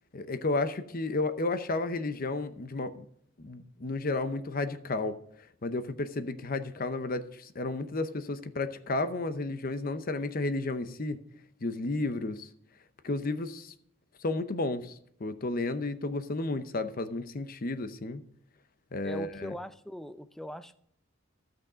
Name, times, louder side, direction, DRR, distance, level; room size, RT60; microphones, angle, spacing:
voice 1, 0.1-3.0 3.4-5.2 5.6-11.2 11.6-12.5 13.0-13.7 14.2-18.2 18.9-19.5, left 2 dB, 45° left, 0.7 m, -32 dB
voice 2, 19.0-20.7, equal, ahead, 0.4 m, -41 dB
13.5 x 6.4 x 5.0 m
head